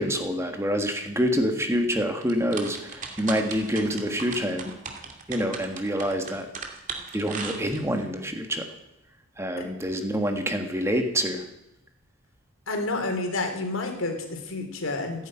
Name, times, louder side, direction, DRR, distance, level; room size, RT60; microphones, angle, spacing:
voice 1, 0.0-4.7 5.3-6.5 7.1-8.6 9.4-11.4, equal, 15° right, 5 dB, 1.6 m, -26 dB
sound 1, 2.2-8.0, right 5 dB, 40° right, 2.4 m, -37 dB
voice 2, 12.7-15.3, left 2 dB, 75° left, 4 dB, 3.5 m, -29 dB
15.5 x 10.5 x 9.0 m, 0.87 s
head